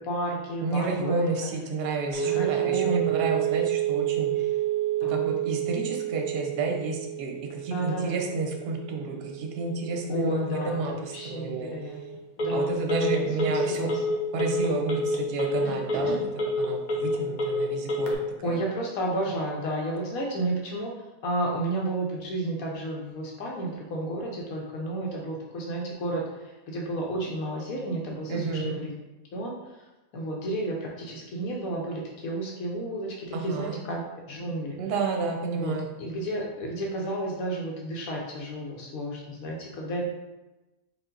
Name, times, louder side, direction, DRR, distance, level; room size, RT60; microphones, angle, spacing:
voice 1, 0.0-1.3 2.2-3.4 5.0-5.3 7.7-8.2 10.1-12.0 12.4-14.0 15.6-15.7 16.0-16.2 18.4-20.9 21.2-28.9 29.3-29.8 30.1-34.0 34.3-34.8 35.5-40.1, right 1 dB, 80° left, -1 dB, 1.2 m, -32 dB
voice 2, 0.6-4.5 5.1-11.7 12.5-13.9 14.3-16.2 16.6-18.1 18.4-18.6 28.3-28.7 33.3-33.8 34.8-35.9, right 3 dB, 55° right, 2 dB, 0.7 m, -30 dB
Telephone, 2.1-18.1, right 4 dB, 45° left, 0.7 m, -29 dB
4.9 x 2.5 x 3.8 m, 1.1 s
omnidirectional pair, 1.5 m